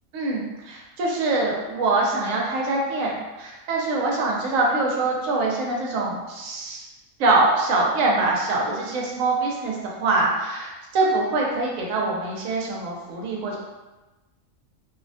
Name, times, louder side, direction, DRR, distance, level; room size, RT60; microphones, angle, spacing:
voice 1, 0.1-6.9 7.2-13.6, right 2 dB, 80° right, -2 dB, 1.0 m, -24 dB
2.6 x 2.1 x 2.6 m, 1.1 s
omnidirectional pair, 1.3 m